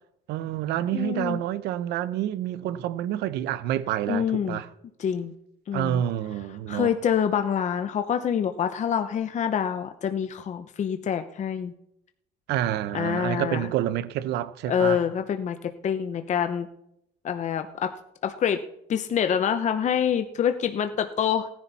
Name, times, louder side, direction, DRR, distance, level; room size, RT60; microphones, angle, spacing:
voice 1, 0.3-4.7 5.7-6.9 12.5-15.0, right 12 dB, 85° right, 0.8 m, -28 dB
voice 2, 0.9-1.4 4.1-4.6 5.0-5.3 5.7-6.0 6.7-11.7 12.9-13.7 14.7-16.7 17.2-17.9 18.2-18.6 18.9-21.5, left 8 dB, 45° left, 0.9 m, -26 dB
17.5 x 10.5 x 4.2 m
cardioid pair, 110°, 17 cm